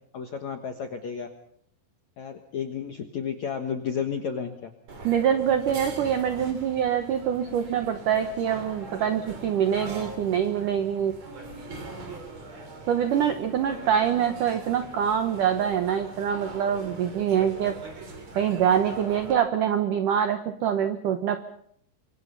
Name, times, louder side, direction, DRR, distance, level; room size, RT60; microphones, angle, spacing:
voice 1, 0.1-1.3 2.2-4.7 13.7-13.9, left 7 dB, 70° left, 5 dB, 1.7 m, -32 dB
sound 1, 4.9-19.4, right 2 dB, 40° right, 4.2 m, -42 dB
voice 2, 5.0-11.1 12.9-17.7 18.4-21.4, right 8 dB, 80° right, 8 dB, 1.9 m, -25 dB
26.5 x 23.0 x 5.7 m, 0.69 s
omnidirectional pair, 5.4 m